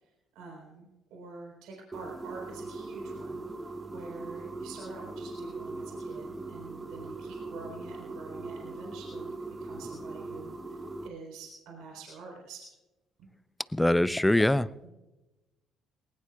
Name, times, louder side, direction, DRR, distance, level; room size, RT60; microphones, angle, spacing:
voice 1, 0.0-3.5 3.9-9.3 9.6-12.7 13.2-13.3 14.8-14.9, right 4 dB, 70° right, -1 dB, 4.2 m, -47 dB
sound 1, 1.9-11.1, right 3 dB, 30° right, 1.6 m, -40 dB
voice 2, 13.7-14.7, left 1 dB, 10° left, 18 dB, 0.6 m, -23 dB
20.5 x 19.5 x 2.4 m, 1.0 s
hypercardioid pair, 50°, 0 cm